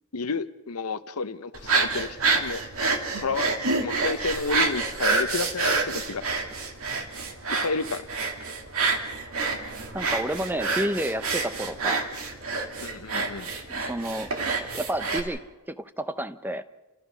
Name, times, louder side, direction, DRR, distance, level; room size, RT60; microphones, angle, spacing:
voice 1, 0.1-2.6 3.1-6.2 7.6-8.1 12.8-13.5, left 4 dB, 85° left, 0.9 m, -31 dB
sound 1, 1.5-15.2, right 4 dB, 70° right, 2.5 m, -28 dB
voice 2, 9.9-12.0 13.7-15.4 15.7-16.6, right 1 dB, 10° right, 0.7 m, -30 dB
29.5 x 15.0 x 6.3 m
head